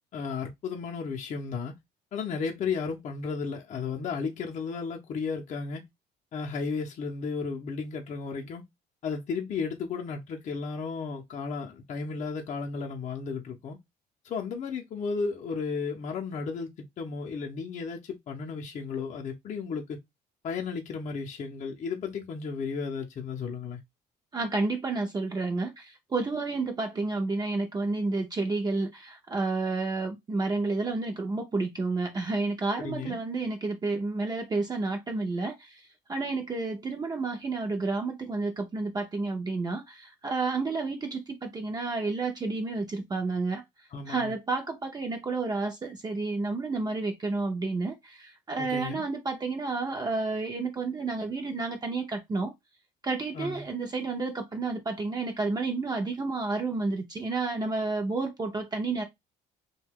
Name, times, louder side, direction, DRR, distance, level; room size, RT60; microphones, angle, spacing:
voice 1, 0.1-1.8 2.1-5.8 6.3-8.6 9.0-13.8 14.2-20.0 20.4-23.8 32.8-33.2 43.9-44.3 48.6-49.0 53.3-53.7, left 5 dB, 45° left, 0.6 m, -34 dB
voice 2, 24.3-43.6 44.1-52.5 53.0-59.0, right 3 dB, 25° right, 0.5 m, -30 dB
2.7 x 2.2 x 3.4 m
cardioid pair, 110°, 17 cm